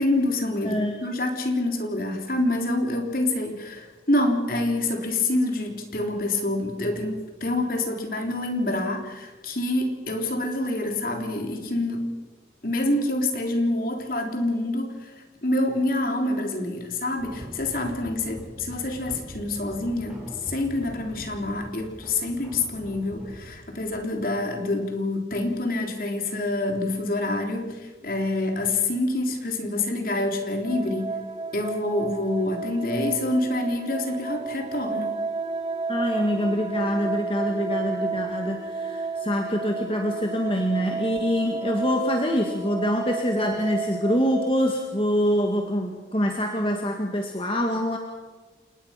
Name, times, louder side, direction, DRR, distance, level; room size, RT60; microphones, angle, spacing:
voice 1, 0.0-12.1 12.6-15.1 15.4-31.2 31.5-35.2, left 2 dB, 50° left, 3 dB, 3.6 m, -27 dB
sound 1, 17.2-24.6, equal, 5° right, 4.9 m, -42 dB
sound 2, 30.6-44.5, right 3 dB, 30° right, 0.9 m, -32 dB
voice 2, 35.9-48.0, equal, 30° left, 2 dB, 2.0 m, -25 dB
29.5 x 19.0 x 5.9 m, 1.3 s
head